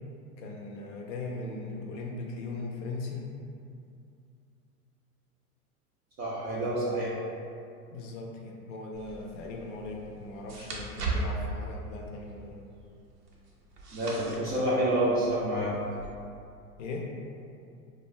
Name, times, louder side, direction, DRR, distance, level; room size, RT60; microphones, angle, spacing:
voice 1, 0.4-3.3 7.9-12.6 16.8-17.1, left 3 dB, 55° left, 0 dB, 0.5 m, -39 dB
voice 2, 6.2-7.2 13.9-15.7, right 1 dB, 25° right, -8 dB, 0.4 m, -28 dB
sound 1, 8.9-16.1, right 2 dB, 90° right, 0.6 m, -39 dB
2.4 x 2.2 x 3.1 m, 2.5 s
hypercardioid pair, 90°, 46 cm